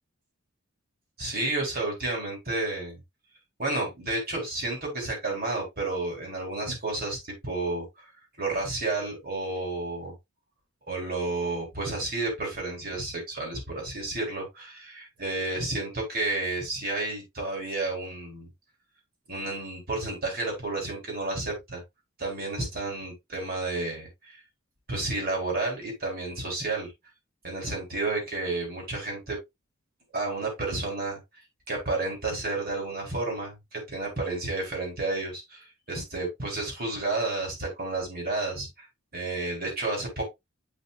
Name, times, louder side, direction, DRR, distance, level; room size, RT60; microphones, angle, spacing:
voice 1, 1.2-3.0 3.6-8.1 8.4-10.1 10.9-18.5 19.3-21.8 22.2-24.4 24.9-26.9 27.4-29.4 30.1-31.2 31.7-38.9 39.1-40.3, right 2 dB, 45° right, 3.9 m, -31 dB
8.5 x 5.6 x 2.4 m
head